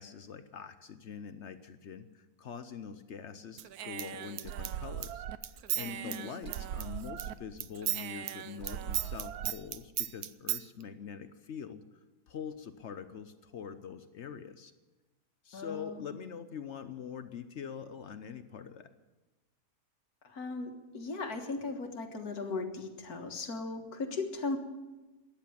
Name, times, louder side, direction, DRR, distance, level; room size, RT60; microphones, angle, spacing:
voice 1, 0.0-5.2 5.8-11.8 12.3-14.7 15.4-18.9, left 7 dB, 60° left, 11 dB, 0.9 m, -44 dB
Human voice / Scissors, 3.6-7.3 7.6-10.6, right 12 dB, 85° right, 1.2 m, -36 dB
voice 2, 5.8-6.3 15.5-16.1 20.2-24.6, left 3 dB, 90° left, 5 dB, 2.0 m, -37 dB
14.0 x 10.0 x 8.7 m, 1.1 s
omnidirectional pair, 1.5 m